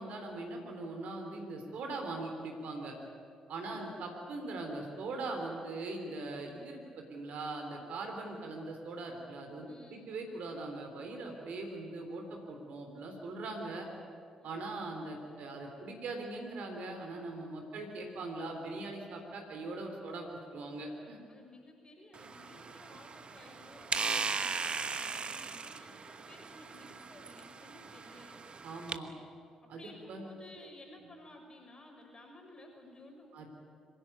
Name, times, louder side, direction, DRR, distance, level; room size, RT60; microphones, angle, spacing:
voice 1, 0.0-2.9 3.5-13.9 14.4-21.2 28.6-29.1 29.7-30.3 33.3-33.5, right 2 dB, 60° right, 3 dB, 3.7 m, -41 dB
voice 2, 3.6-4.0 9.7-10.1 14.4-14.7 21.3-28.4 29.8-33.5, left 1 dB, 30° left, 2 dB, 6.3 m, -55 dB
sound 1, 22.1-29.0, right 5 dB, 40° right, 1.2 m, -38 dB
25.0 x 17.0 x 9.4 m, 2.3 s
figure-of-eight pair, 40°, 3 cm